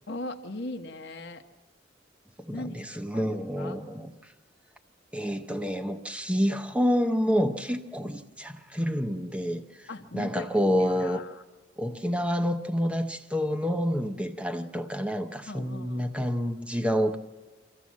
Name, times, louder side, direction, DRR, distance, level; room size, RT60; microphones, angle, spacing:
voice 1, 0.1-1.4 2.5-2.8 3.1-4.0 9.9-10.5 10.8-11.4 15.4-16.1, left 2 dB, 65° left, 1.0 m, -39 dB
voice 2, 2.4-4.1 5.1-9.9 10.1-11.2 11.8-17.2, equal, 5° right, 0.8 m, -28 dB
25.0 x 14.5 x 7.4 m
head